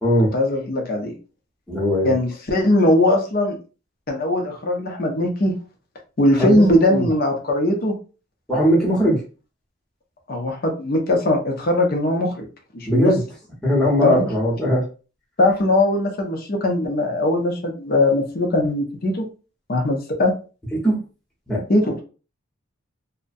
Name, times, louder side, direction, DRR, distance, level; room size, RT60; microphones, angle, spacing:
voice 1, 0.3-1.1 2.0-3.6 4.1-5.5 6.2-8.0 10.3-12.5 12.7-13.1 14.0-14.2 15.4-19.2 19.7-20.3 21.7-22.0, left 1 dB, 45° left, 2 dB, 0.5 m, -20 dB
voice 2, 1.7-2.2 6.4-6.6 6.9-7.1 8.5-9.2 12.8-13.2 13.6-14.9 20.8-21.0 21.5-21.6, equal, 5° left, -5 dB, 0.7 m, -19 dB
2.4 x 2.1 x 2.5 m, 0.34 s
head